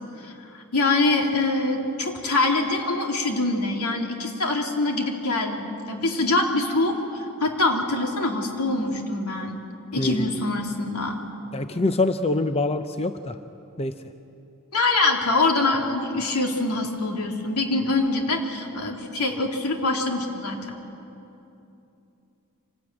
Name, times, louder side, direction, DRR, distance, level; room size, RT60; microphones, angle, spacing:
voice 1, 0.2-7.0 7.4-9.6 9.9-11.2 14.7-20.7, left 2 dB, 80° left, 2 dB, 2.8 m, -24 dB
voice 2, 10.0-10.3 11.5-13.4 13.8-13.9, left 2 dB, 25° left, 9 dB, 0.6 m, -25 dB
26.0 x 19.0 x 8.8 m, 2.8 s
head